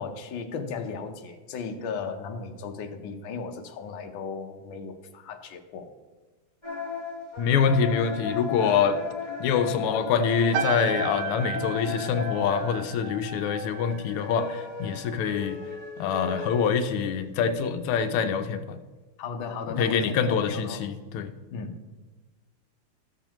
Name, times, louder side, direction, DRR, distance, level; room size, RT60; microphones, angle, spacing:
voice 1, 0.0-5.9 19.2-20.0 20.3-20.8 21.5-21.7, left 5 dB, 70° left, 5 dB, 1.5 m, -36 dB
sound 1, 6.6-13.0 13.5-17.0, left 5 dB, 15° left, 1.1 m, -36 dB
voice 2, 7.4-9.0 9.4-15.6 16.0-18.8 19.8-21.3, left 6 dB, 90° left, 9 dB, 1.5 m, -25 dB
sound 2, 10.5-15.2 15.4-15.8, right 7 dB, 85° right, 1.8 m, -35 dB
13.5 x 7.0 x 3.0 m, 1.3 s
omnidirectional pair, 2.4 m